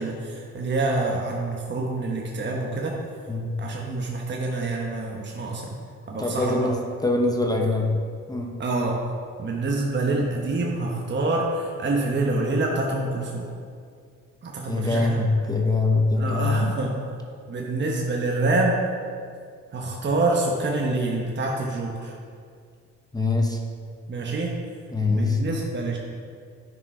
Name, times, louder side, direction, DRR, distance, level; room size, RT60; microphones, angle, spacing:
voice 1, 0.0-3.0 3.6-5.8 6.1-6.7 8.6-9.0 9.4-13.5 14.4-15.2 16.2-17.0 17.5-18.8 19.7-22.1 24.1-24.5 25.1-26.0, right 2 dB, 35° right, -1 dB, 1.1 m, -26 dB
voice 2, 3.3-3.6 6.2-8.0 8.3-8.6 14.7-16.6 23.1-23.6 24.9-25.4, left 3 dB, 10° left, 0 dB, 0.9 m, -23 dB
9.5 x 5.1 x 4.8 m, 2.2 s
cardioid pair, 90°, 30 cm